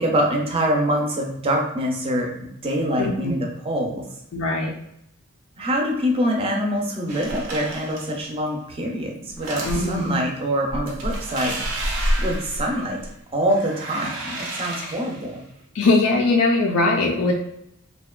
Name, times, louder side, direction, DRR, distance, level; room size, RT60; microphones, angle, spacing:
voice 1, 0.0-4.0 5.6-11.5 12.2-13.0 13.3-15.4, equal, 25° right, 0 dB, 0.5 m, -24 dB
voice 2, 3.0-3.4 4.3-4.7 9.6-10.2 14.8-14.9 15.7-17.3, left 2 dB, 75° left, 0 dB, 0.3 m, -21 dB
sound 1, 7.1-8.2 9.3-10.2 10.7-13.1 13.4-15.3, right 1 dB, 90° right, 0.6 m, -29 dB
2.7 x 2.1 x 2.3 m, 0.76 s
head